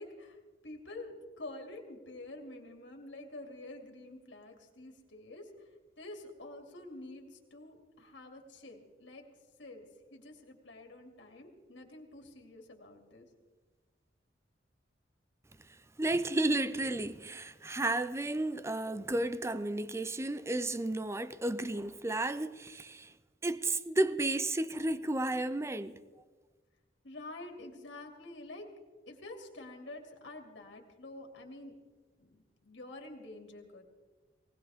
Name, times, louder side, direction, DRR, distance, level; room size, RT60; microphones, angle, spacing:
voice 1, 0.0-5.7 6.0-9.2 9.6-13.3 25.8-26.3 27.0-28.7 29.1-31.7 32.2-33.8, left 2 dB, 80° left, 2.7 m, -48 dB
voice 2, 16.0-23.1 23.4-26.0, right 2 dB, 15° right, 0.5 m, -32 dB
20.0 x 19.5 x 3.6 m
head